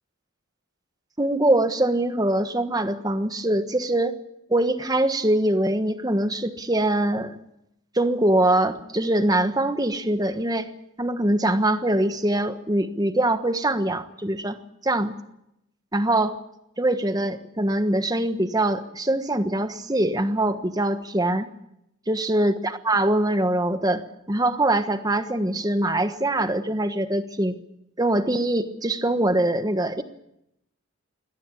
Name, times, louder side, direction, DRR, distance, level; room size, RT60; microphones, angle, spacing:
voice 1, 1.2-4.2 4.5-7.4 7.9-10.7 11.0-14.5 14.8-15.2 15.9-16.3 16.8-21.5 22.1-27.6 28.0-30.0, right 1 dB, 20° right, 9 dB, 1.3 m, -23 dB
24.0 x 17.5 x 8.5 m, 0.82 s
head